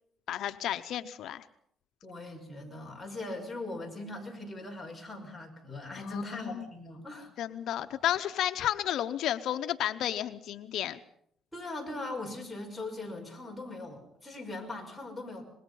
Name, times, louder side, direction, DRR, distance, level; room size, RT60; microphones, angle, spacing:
voice 1, 0.3-1.5 6.1-6.2 6.5-6.7 7.4-11.0, left 11 dB, 75° left, 10 dB, 0.8 m, -32 dB
voice 2, 2.0-7.3 11.5-15.4, left 2 dB, 5° left, 0 dB, 5.8 m, -40 dB
25.0 x 21.0 x 5.6 m, 0.70 s
cardioid pair, 105°, 0 cm